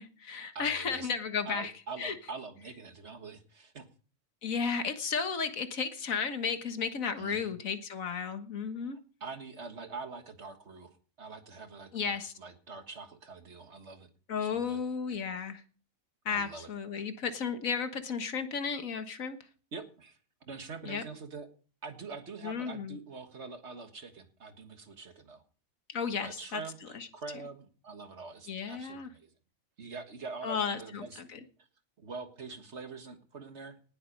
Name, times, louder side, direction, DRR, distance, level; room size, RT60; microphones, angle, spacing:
voice 1, 0.0-1.7 2.0-2.1 4.4-9.0 11.9-12.3 14.3-15.6 16.3-19.4 20.9-21.0 22.4-23.0 25.9-26.6 26.9-27.1 28.5-29.1 30.4-31.4, left 6 dB, 80° left, 9 dB, 1.8 m, -34 dB
voice 2, 0.6-1.1 1.4-3.9 7.2-7.5 9.2-14.1 14.4-14.8 16.3-17.0 19.7-21.5 21.8-25.4 26.2-29.3 29.8-31.2 32.0-33.8, right 4 dB, 55° right, 8 dB, 1.8 m, -44 dB
19.0 x 7.8 x 5.3 m, 0.40 s
omnidirectional pair, 1.4 m